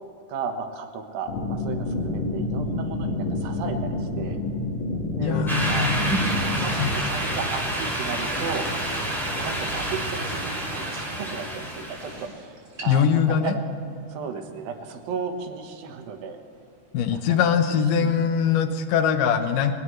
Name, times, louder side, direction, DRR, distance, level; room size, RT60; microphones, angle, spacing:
voice 1, 0.3-4.4 5.1-6.1 6.6-8.7 9.4-13.6 14.1-16.4 17.1-18.2, right 6 dB, 85° right, 4 dB, 3.1 m, -35 dB
sound 1, 1.3-6.7, left 2 dB, 45° left, 1.9 m, -28 dB
voice 2, 5.2-6.0 6.8-7.1 12.9-13.5 16.9-19.7, left 7 dB, 70° left, 7 dB, 2.5 m, -22 dB
sound 2, 5.5-12.2, right 1 dB, ahead, 3.9 m, -28 dB
sound 3, 5.7-18.5, right 1 dB, 20° right, 3.6 m, -45 dB
23.0 x 18.0 x 3.2 m, 2.6 s
omnidirectional pair, 4.0 m